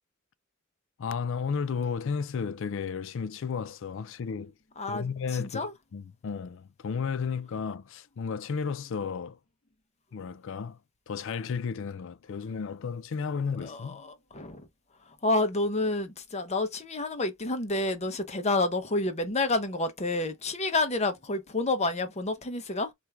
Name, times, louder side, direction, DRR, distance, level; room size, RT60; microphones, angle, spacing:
voice 1, 1.0-4.5 4.9-9.4 10.1-10.8 11.1-14.0, left 6 dB, 65° left, 0.4 m, -33 dB
voice 2, 4.8-5.7 13.6-14.7 15.1-22.9, left 2 dB, 35° left, 0.8 m, -29 dB
4.4 x 2.6 x 3.4 m
head